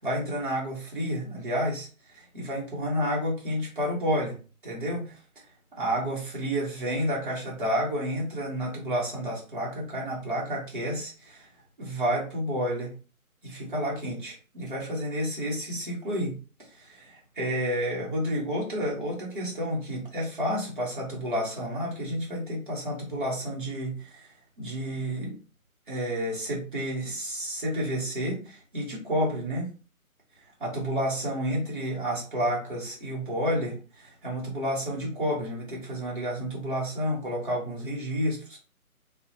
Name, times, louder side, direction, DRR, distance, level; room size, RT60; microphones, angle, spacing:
voice 1, 0.0-4.4 4.6-5.2 5.8-11.5 11.8-12.9 13.4-24.3 24.6-25.3 25.9-29.7 30.6-38.6, equal, 35° right, -4 dB, 0.8 m, -30 dB
2.6 x 2.0 x 2.7 m, 0.36 s
hypercardioid pair, 175°, 43 cm